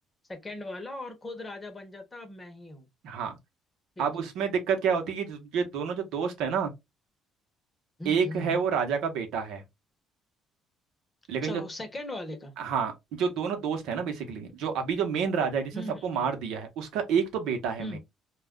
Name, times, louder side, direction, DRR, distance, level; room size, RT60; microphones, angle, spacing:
voice 1, 0.3-2.9 4.0-4.3 8.0-8.7 11.4-12.5 15.7-16.3 17.8-18.0, left 1 dB, 20° left, 0.8 m, -39 dB
voice 2, 3.0-3.4 4.0-6.7 8.0-9.6 11.3-11.6 12.6-15.7 16.0-18.0, right 6 dB, 80° right, 0.8 m, -29 dB
2.3 x 2.1 x 3.5 m
cardioid pair, 110°, 0 cm